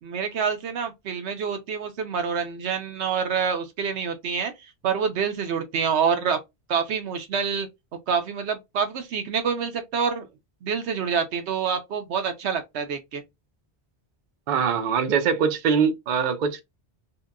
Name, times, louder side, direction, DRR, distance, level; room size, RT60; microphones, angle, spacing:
voice 1, 0.0-6.4 6.7-7.7 8.1-10.3 10.6-13.2, right 6 dB, 80° right, 0.9 m, -27 dB
voice 2, 14.5-16.6, right 6 dB, 60° right, 0.6 m, -23 dB
2.8 x 2.1 x 2.3 m
omnidirectional pair, 1.1 m